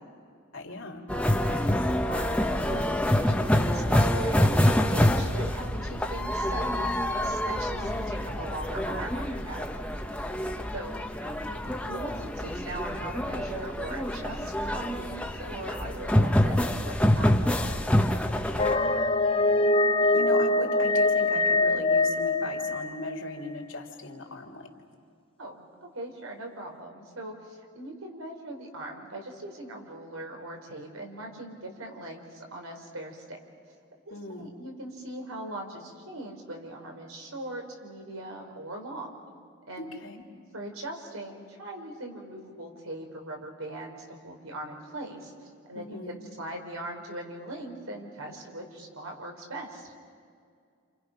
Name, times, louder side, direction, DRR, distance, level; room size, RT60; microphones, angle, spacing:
voice 1, 0.5-1.0 7.8-8.2 11.2-11.7 18.7-24.7 34.1-34.5 39.8-40.3 45.7-46.2, left 2 dB, 70° left, 2 dB, 3.1 m, -38 dB
sound 1, 1.1-18.7, left 1 dB, 5° left, 1.0 m, -26 dB
voice 2, 1.8-9.9 10.7-11.1 11.9-17.7 25.4-33.4 34.1-39.2 39.7-40.0 40.5-49.9, right 1 dB, 90° right, 2 dB, 4.5 m, -40 dB
sound 2, 18.6-23.3, left 2 dB, 25° left, 0.6 m, -23 dB
30.0 x 28.0 x 5.9 m, 2.3 s
head